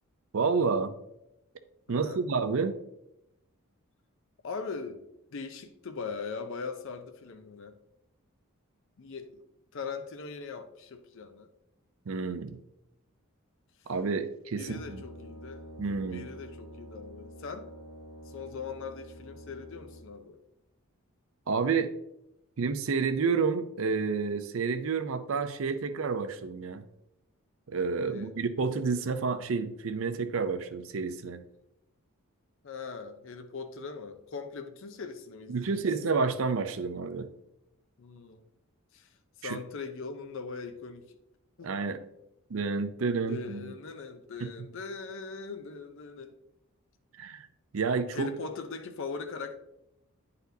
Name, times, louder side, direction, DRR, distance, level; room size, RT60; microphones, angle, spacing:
voice 1, 0.3-0.9 1.9-2.8 12.1-12.6 13.9-15.0 15.8-16.3 21.5-21.9 22.6-26.8 27.7-31.4 35.5-37.3 39.4-39.6 41.6-42.0 42.5-43.7 47.2-47.5 47.7-48.3, right 4 dB, 60° right, 9 dB, 0.5 m, -29 dB
voice 2, 1.9-2.2 4.4-5.0 5.3-7.8 9.0-9.4 9.7-11.5 14.6-15.6 16.1-17.7 18.3-20.4 28.1-28.3 32.6-35.8 38.0-38.4 38.9-39.1 39.4-41.2 41.6-41.7 43.3-46.3 48.1-49.6, left 4 dB, 60° left, 7 dB, 0.5 m, -40 dB
Brass instrument, 14.5-20.3, equal, 85° left, 0.9 m, -48 dB
9.4 x 4.1 x 2.7 m, 0.84 s
head